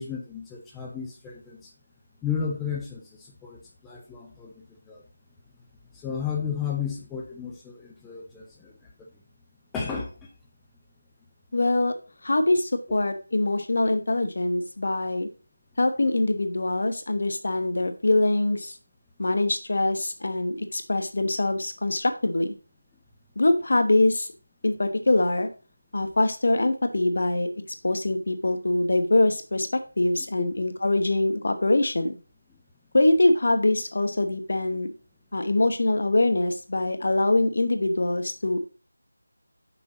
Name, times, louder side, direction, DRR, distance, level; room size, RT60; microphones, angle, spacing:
voice 1, 0.0-1.7 2.2-5.0 5.9-8.7 9.0-9.1 9.7-10.1, left 7 dB, 5° left, -3 dB, 0.6 m, -33 dB
voice 2, 11.5-11.9 12.2-15.3 15.8-18.8 19.2-22.5 23.4-24.3 24.6-25.5 25.9-27.5 27.8-32.2 32.9-34.9 35.3-38.7, left 2 dB, 55° left, 8 dB, 1.1 m, -23 dB
6.0 x 5.3 x 4.0 m, 0.35 s
figure-of-eight pair, 170°, 0 cm